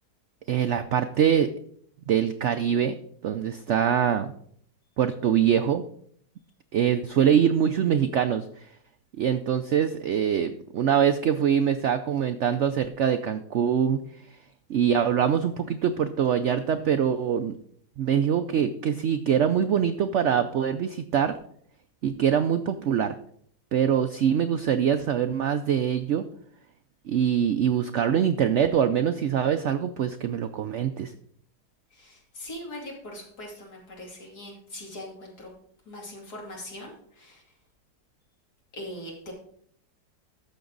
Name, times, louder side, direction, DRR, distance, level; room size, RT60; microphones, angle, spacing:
voice 1, 0.5-1.5 2.1-2.9 3.2-4.3 5.0-5.8 6.7-8.5 9.2-14.0 14.7-17.5 18.0-21.4 22.0-23.1 23.7-26.2 27.1-31.1, right 8 dB, 70° right, 9 dB, 0.6 m, -24 dB
voice 2, 31.9-35.5 35.9-37.4 38.7-39.3, left 1 dB, 65° left, -2 dB, 3.2 m, -41 dB
13.5 x 6.2 x 3.9 m, 0.64 s
omnidirectional pair, 1.8 m